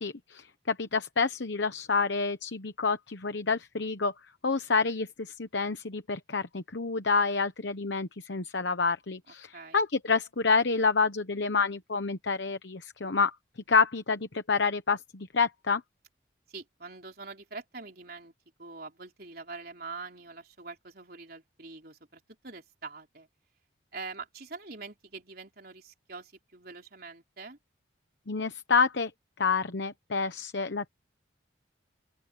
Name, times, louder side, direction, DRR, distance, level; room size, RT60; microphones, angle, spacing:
voice 1, 0.0-4.1 4.4-13.3 13.7-15.8 28.3-29.1 29.4-30.9, left 4 dB, 65° left, 1.0 m, -28 dB
voice 2, 9.5-9.9 16.5-18.3 18.6-23.3 23.9-27.6, right 4 dB, 50° right, 4.1 m, -44 dB
open air
head